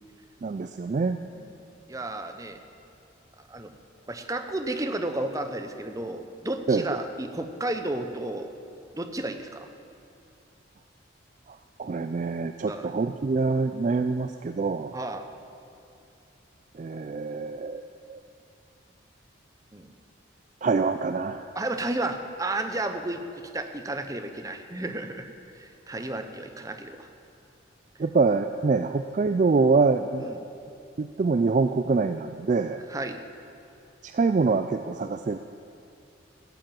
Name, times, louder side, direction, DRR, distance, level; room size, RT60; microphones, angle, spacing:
voice 1, 0.4-1.2 6.7-7.0 11.5-14.9 16.7-17.8 18.1-18.2 20.6-21.5 28.0-30.3 31.0-32.8 34.0-35.4, right 4 dB, 40° right, 9 dB, 0.3 m, -25 dB
voice 2, 1.9-2.6 3.5-3.7 4.1-8.5 8.9-9.7 12.7-12.9 14.9-15.3 19.7-19.9 21.5-23.2 23.5-27.1 30.2-30.4 32.9-33.2, right 2 dB, 15° right, 7 dB, 0.7 m, -32 dB
14.0 x 7.6 x 9.1 m, 2.6 s
head